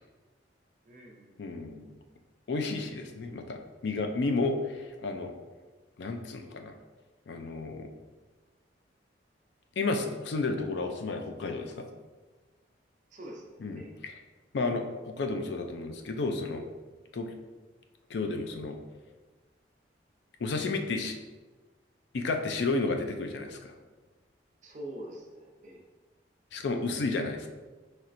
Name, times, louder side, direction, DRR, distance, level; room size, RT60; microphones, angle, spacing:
voice 1, 0.8-1.6 13.1-13.9 24.6-25.8, right 1 dB, 40° right, 0 dB, 0.6 m, -45 dB
voice 2, 1.4-2.0 2.5-5.3 6.0-6.7 7.3-7.9 9.8-11.9 13.6-14.2 14.5-16.6 17.1-17.3 18.1-18.8 20.4-21.2 22.1-23.7 26.5-27.5, left 3 dB, 65° left, 5 dB, 0.4 m, -32 dB
4.3 x 3.1 x 2.5 m, 1.3 s
head